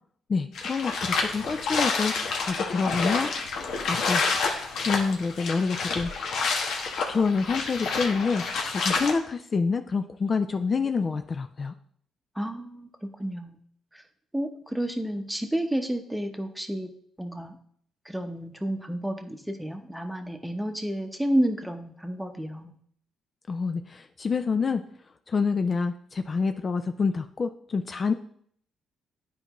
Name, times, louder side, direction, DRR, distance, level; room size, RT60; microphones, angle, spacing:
voice 1, 0.3-2.1 2.4-3.3 3.9-4.2 4.9-6.1 7.1-8.4 8.7-11.7 23.5-24.8 25.3-28.1, left 4 dB, 40° left, 8 dB, 0.4 m, -27 dB
sound 1, 0.5-9.1, left 4 dB, 75° left, 1.1 m, -28 dB
voice 2, 12.4-12.9 13.2-13.6 13.9-14.0 14.3-16.9 17.2-17.6 18.0-22.7, right 1 dB, 5° right, 6 dB, 0.9 m, -30 dB
10.5 x 4.5 x 3.0 m, 0.64 s
cardioid pair, 90°, 0 cm